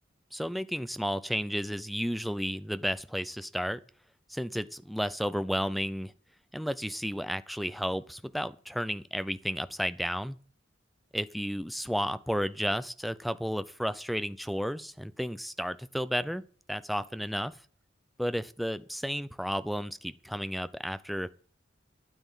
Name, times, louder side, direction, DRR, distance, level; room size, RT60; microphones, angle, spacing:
voice 1, 0.3-3.8 4.3-6.1 6.5-10.4 11.1-17.5 18.2-21.3, equal, ahead, 0.6 m, -32 dB
12.5 x 9.4 x 5.7 m
head